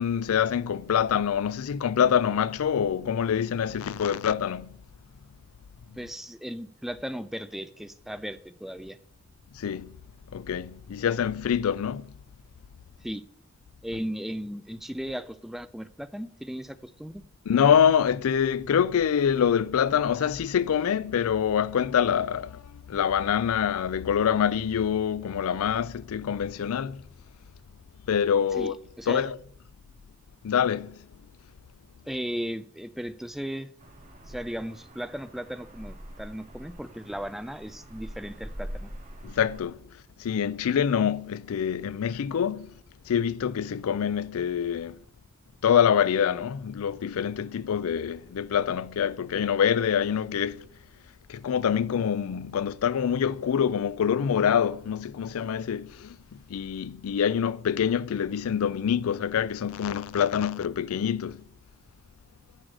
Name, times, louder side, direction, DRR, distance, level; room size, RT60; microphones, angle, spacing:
voice 1, 0.0-4.8 9.5-10.0 10.3-12.1 17.5-27.0 28.1-28.7 29.1-29.4 30.4-31.0 39.2-39.8 40.2-42.7 43.1-45.0 45.6-50.7 51.3-61.4, left 8 dB, 80° left, 0.4 m, -25 dB
voice 2, 6.0-9.0 13.0-13.2 13.8-17.2 28.6-29.3 32.1-33.7 34.3-38.9, equal, ahead, 0.3 m, -36 dB
sound 1, 33.8-39.6, equal, 35° right, 2.0 m, -43 dB
9.8 x 4.8 x 6.4 m
head